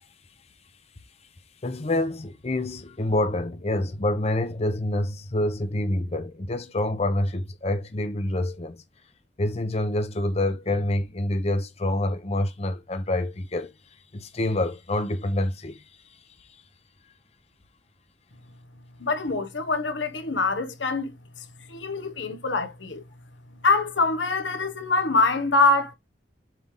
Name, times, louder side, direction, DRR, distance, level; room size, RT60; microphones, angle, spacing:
voice 1, 1.6-8.8 9.4-13.7 14.1-15.8, left 1 dB, 35° left, 0.8 m, -27 dB
voice 2, 19.0-21.1 21.7-23.0 23.6-25.9, left 3 dB, 90° left, 1.4 m, -24 dB
7.5 x 3.4 x 3.8 m
head